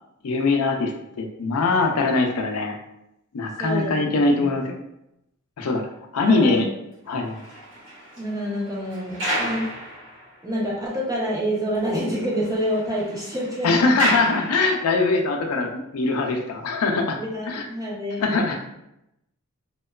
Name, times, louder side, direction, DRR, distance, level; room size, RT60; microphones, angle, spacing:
voice 1, 0.2-0.9 1.2-2.8 3.3-4.7 5.6-5.8 6.1-6.7 7.1-7.4 13.6-17.2 17.5-17.7 18.2-18.5, left 3 dB, 75° left, 2 dB, 0.4 m, -22 dB
voice 2, 3.6-4.6 6.3-6.7 8.2-9.7 10.4-13.9 17.2-18.6, equal, 15° right, -5 dB, 0.6 m, -28 dB
sound 1, 7.1-10.6 11.1-11.2 11.5-11.6 11.9-15.2, equal, 60° right, 1.0 m, -31 dB
2.8 x 2.2 x 2.3 m, 0.83 s
head